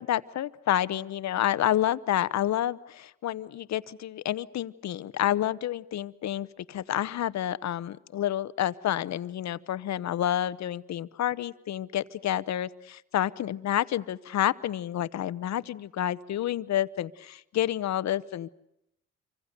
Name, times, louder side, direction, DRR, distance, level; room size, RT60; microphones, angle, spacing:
voice 1, 0.0-18.5, left 12 dB, 65° left, 16 dB, 0.9 m, -29 dB
27.0 x 25.0 x 6.7 m, 0.80 s
cardioid pair, 90°, 30 cm